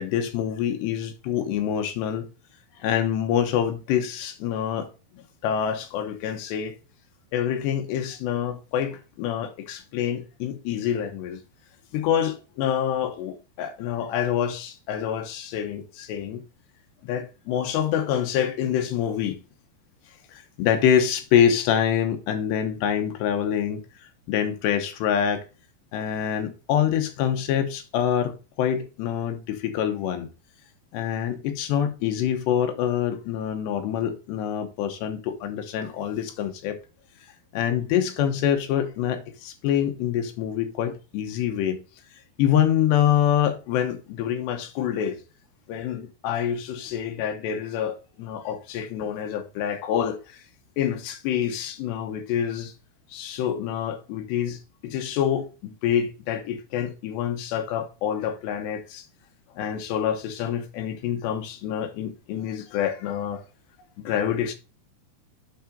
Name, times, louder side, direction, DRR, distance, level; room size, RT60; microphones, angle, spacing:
voice 1, 0.0-2.3 2.8-6.8 7.3-11.4 11.9-16.4 17.0-19.4 20.3-23.8 24.3-25.5 25.9-30.3 30.9-36.8 37.5-41.8 42.4-45.2 45.7-50.4 50.8-52.7 53.1-59.0 59.6-63.4 64.0-64.5, left 9 dB, 85° left, 3.2 m, -26 dB
8.6 x 3.9 x 5.1 m
omnidirectional pair, 4.8 m